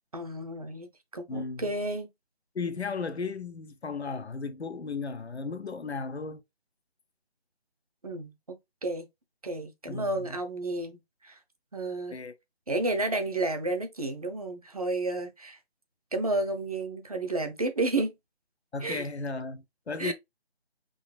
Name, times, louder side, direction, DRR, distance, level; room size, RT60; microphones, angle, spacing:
voice 1, 0.1-2.1 8.0-8.3 8.8-9.1 9.4-11.4 11.7-12.2 12.7-15.6 16.1-18.1 18.8-19.1 20.0-20.1, right 2 dB, 35° right, 0.7 m, -31 dB
voice 2, 1.3-1.7 2.5-6.4 9.9-10.3 12.1-12.3 18.7-20.1, left 4 dB, 90° left, 0.8 m, -35 dB
4.1 x 3.9 x 2.2 m
figure-of-eight pair, 160°, 32 cm